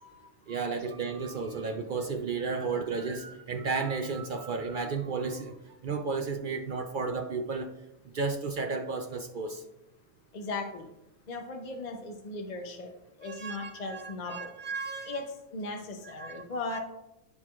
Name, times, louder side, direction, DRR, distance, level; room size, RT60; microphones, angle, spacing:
voice 1, 0.0-5.6 5.8-7.7 8.1-9.6 13.2-15.2 16.0-16.8, right 4 dB, 60° right, 6 dB, 0.5 m, -33 dB
voice 2, 10.3-10.9 11.3-12.9 13.2-14.5 15.1-15.2 15.5-16.8, left 2 dB, 40° left, 3 dB, 0.6 m, -37 dB
14.0 x 4.7 x 2.4 m, 0.94 s
omnidirectional pair, 1.4 m